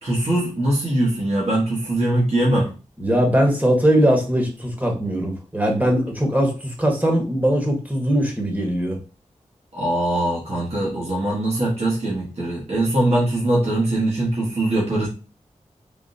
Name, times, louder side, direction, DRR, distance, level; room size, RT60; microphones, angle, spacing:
voice 1, 0.0-2.7 9.7-15.1, right 1 dB, 55° right, -5 dB, 1.3 m, -21 dB
voice 2, 3.0-9.0, equal, 10° right, 1 dB, 1.2 m, -20 dB
3.7 x 2.4 x 2.6 m, 0.32 s
cardioid pair, 40°, 13 cm